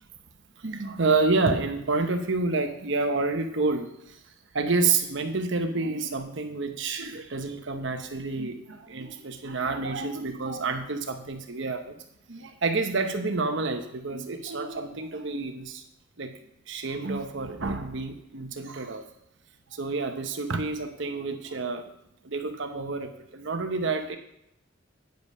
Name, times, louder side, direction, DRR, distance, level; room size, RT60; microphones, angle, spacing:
voice 1, 0.6-4.2 4.5-12.0 12.3-15.8 16.2-16.3 16.7-19.0 19.7-21.9 22.2-24.2, right 3 dB, 70° right, 6 dB, 1.0 m, -29 dB
9.1 x 5.2 x 5.4 m, 0.78 s
head